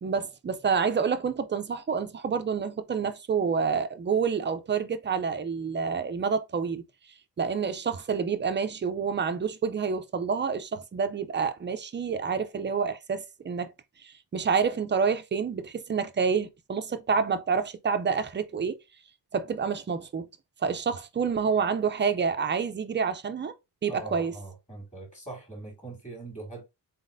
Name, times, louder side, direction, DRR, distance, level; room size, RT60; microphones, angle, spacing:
voice 1, 0.0-6.8 7.4-13.7 14.0-18.8 19.3-20.3 20.6-23.5 23.8-24.3, right 6 dB, 30° right, 0.4 m, -28 dB
voice 2, 23.9-26.6, right 2 dB, 15° left, 2.0 m, -41 dB
4.0 x 4.0 x 2.6 m
wide cardioid pair, 175°, 41 cm